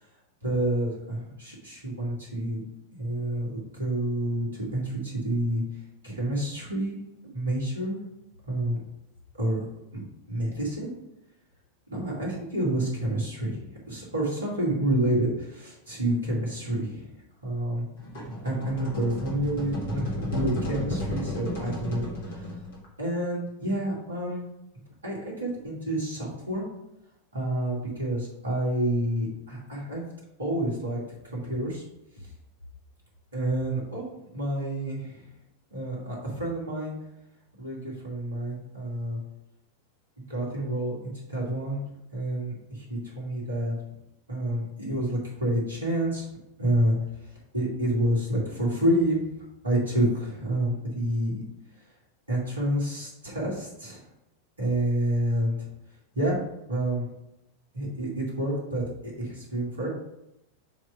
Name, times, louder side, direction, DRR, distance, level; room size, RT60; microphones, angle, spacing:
voice 1, 0.4-2.6 2.9-5.6 6.0-7.0 7.3-8.0 8.5-8.8 9.4-9.6 9.9-10.0 10.3-10.9 11.9-17.1 17.4-17.9 18.4-22.6 23.0-24.5 25.0-26.7 27.3-30.0 30.4-31.8 32.2-32.3 33.3-34.0 34.3-35.3 35.7-37.0 37.6-39.2 40.3-43.8 44.3-46.3 46.6-46.9 47.2-49.3 49.6-51.4 52.3-54.0 54.6-55.6 56.1-56.4 56.7-57.1 57.7-59.9, right 1 dB, 75° right, -4 dB, 2.2 m, -28 dB
sound 1, 18.0-22.9, left 1 dB, 55° left, 1.8 m, -33 dB
7.0 x 3.2 x 4.8 m, 0.86 s
figure-of-eight pair, 90°, 0 cm